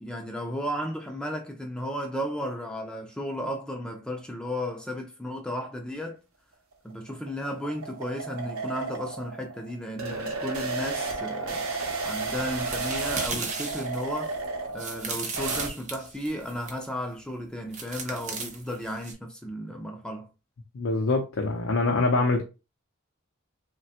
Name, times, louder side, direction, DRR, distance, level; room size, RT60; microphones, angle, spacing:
voice 1, 0.0-6.2 6.8-11.7 12.0-14.4 14.7-20.3, equal, 5° left, 0.4 m, -34 dB
sound 1, 6.7-15.7, right 3 dB, 85° right, 0.7 m, -33 dB
sound 2, 11.8-16.8 17.7-19.1, right 4 dB, 35° right, 0.6 m, -36 dB
voice 2, 20.7-22.4, left 3 dB, 65° left, 0.5 m, -24 dB
3.2 x 2.2 x 2.8 m
head